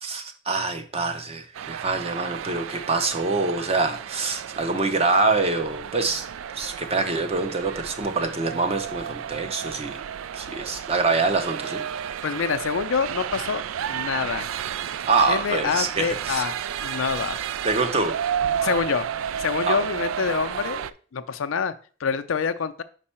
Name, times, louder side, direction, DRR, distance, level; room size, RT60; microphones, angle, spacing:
voice 1, 0.0-6.3 6.5-10.0 10.3-11.8 15.0-16.4 17.6-18.2 19.7-19.8, right 3 dB, 30° right, 0.7 m, -25 dB
sound 1, 1.5-20.9, right 9 dB, 85° right, 0.3 m, -32 dB
voice 2, 12.2-13.6 13.9-14.6 15.3-16.5 16.8-17.4 18.6-19.1 19.4-21.7 22.0-22.8, left 6 dB, 85° left, 0.5 m, -26 dB
5.4 x 4.7 x 4.3 m
head